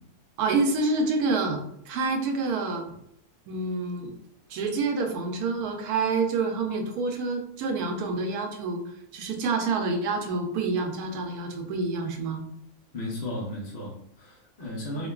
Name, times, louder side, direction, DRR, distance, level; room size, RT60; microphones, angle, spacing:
voice 1, 0.4-1.6 1.9-2.9 3.5-4.1 4.5-8.8 9.1-12.4 15.0-15.1, right 3 dB, 85° right, 4 dB, 1.1 m, -27 dB
voice 2, 12.9-15.1, left 1 dB, 40° left, -4 dB, 0.6 m, -35 dB
4.3 x 2.2 x 2.3 m, 0.73 s
omnidirectional pair, 1.6 m